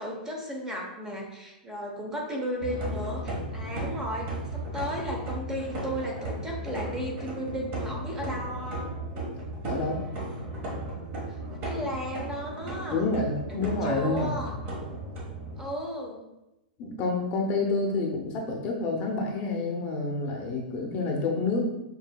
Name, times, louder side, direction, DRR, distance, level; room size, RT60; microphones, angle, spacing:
voice 1, 0.0-9.0 11.3-13.1 13.5-14.6 15.6-16.3, equal, 10° right, -1 dB, 0.8 m, -35 dB
sound 1, 2.6-15.6, right 1 dB, 35° right, 1.2 m, -35 dB
voice 2, 9.7-10.0 12.9-14.4 16.8-21.7, left 3 dB, 35° left, 0 dB, 0.7 m, -28 dB
6.5 x 2.7 x 2.2 m, 0.95 s
hypercardioid pair, 130°, 5 cm